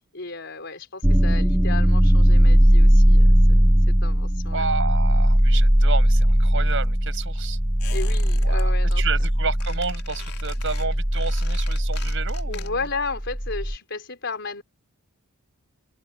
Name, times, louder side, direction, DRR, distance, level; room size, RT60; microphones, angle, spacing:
voice 1, 0.0-3.7 4.0-4.7 7.9-9.4 10.3-10.4 12.5-14.6, left 3 dB, 55° left, 4.4 m, -34 dB
sound 1, 1.0-13.8, equal, 10° right, 0.8 m, -19 dB
voice 2, 4.5-7.6 8.4-12.8, right 4 dB, 55° right, 6.1 m, -31 dB
Squeak, 7.8-8.6 8.9-9.3 9.6-13.0 13.3-13.4, left 9 dB, 85° left, 3.6 m, -42 dB
open air
head